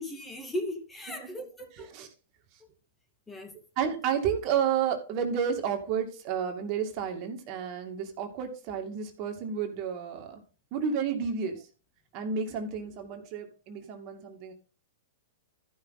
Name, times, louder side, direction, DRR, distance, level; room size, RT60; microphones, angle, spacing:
voice 1, 0.0-1.9 3.3-3.5, left 1 dB, 10° left, 2.3 m, -37 dB
voice 2, 3.8-10.4 10.7-11.6 12.1-14.5, right 7 dB, 45° right, 2.4 m, -31 dB
13.5 x 6.4 x 4.1 m
hypercardioid pair, 125°, 0 cm